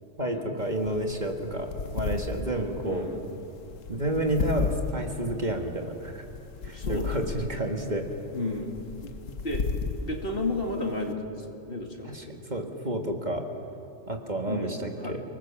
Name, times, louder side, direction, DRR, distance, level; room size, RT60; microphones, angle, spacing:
voice 1, 0.2-3.1 3.9-6.2 6.6-8.0 12.0-12.2 12.5-13.4 14.1-15.2, right 1 dB, 35° right, 3 dB, 1.9 m, -30 dB
sound 1, 0.6-11.1, left 5 dB, 85° left, 1.5 m, -35 dB
voice 2, 2.8-3.2 6.6-7.5 8.3-9.1 9.4-12.4 14.4-15.1, left 2 dB, 45° left, 2 dB, 2.5 m, -33 dB
29.5 x 20.0 x 7.3 m, 2.7 s
omnidirectional pair, 1.3 m